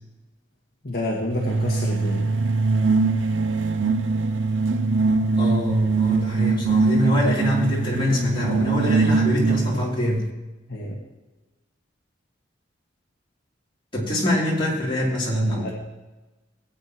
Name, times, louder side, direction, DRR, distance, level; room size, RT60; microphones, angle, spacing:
voice 1, 0.8-2.3 10.7-11.0 15.6-15.7, left 1 dB, 55° left, -3 dB, 1.5 m, -28 dB
sound 1, 1.3-9.9, right 4 dB, 85° right, 0.6 m, -22 dB
voice 2, 5.4-10.3 13.9-15.7, equal, 25° left, -5 dB, 3.1 m, -24 dB
17.5 x 8.5 x 3.0 m, 1.1 s
head